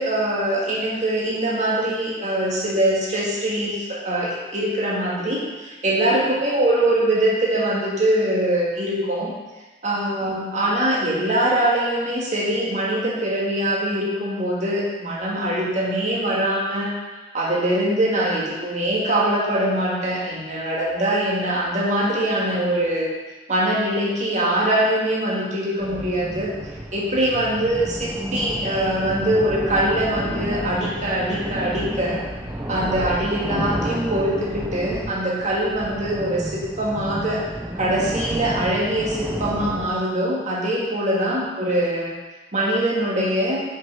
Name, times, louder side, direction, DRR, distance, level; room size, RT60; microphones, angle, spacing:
voice 1, 0.0-9.3 9.8-16.9 17.3-23.1 23.5-26.5 26.9-32.2 32.7-37.4 37.7-42.1 42.5-43.6, right 1 dB, 40° right, -4 dB, 1.7 m, -23 dB
sound 1, 25.8-39.9, equal, 15° right, 0.6 m, -31 dB
6.5 x 5.4 x 4.8 m, 1.2 s
head